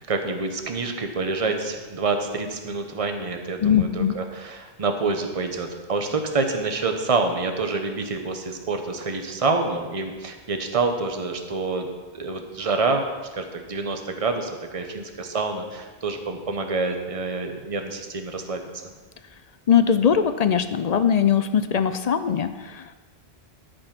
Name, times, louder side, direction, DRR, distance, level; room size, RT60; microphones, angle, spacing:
voice 1, 0.1-11.9 12.1-13.1 13.3-18.9, right 3 dB, 35° right, 5 dB, 1.0 m, -27 dB
voice 2, 3.6-4.2 19.7-22.9, left 8 dB, 55° left, 11 dB, 0.5 m, -21 dB
12.5 x 5.4 x 5.9 m, 1.3 s
omnidirectional pair, 1.1 m